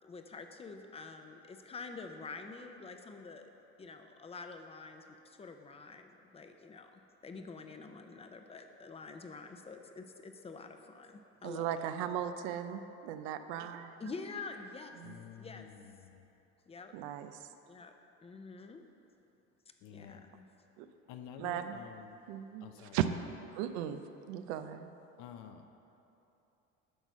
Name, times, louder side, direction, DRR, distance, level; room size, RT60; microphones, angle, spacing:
voice 1, 0.0-3.5 3.8-11.9 14.0-14.9 15.4-16.0 16.7-16.9 17.7-17.9 18.2-18.8 19.9-20.5, left 4 dB, 20° left, 6 dB, 0.6 m, -47 dB
voice 2, 11.4-14.0 15.0-15.1 16.9-17.4 20.8-20.9 21.4-21.8 22.3-23.1 23.5-24.0 24.3-24.9, right 10 dB, 85° right, 9 dB, 0.6 m, -37 dB
voice 3, 15.0-16.2 19.8-20.3 21.1-22.1 22.6-23.0 25.2-25.7, left 8 dB, 65° left, 6 dB, 0.8 m, -50 dB
10.0 x 4.0 x 6.1 m, 2.9 s
supercardioid pair, 105°, 32 cm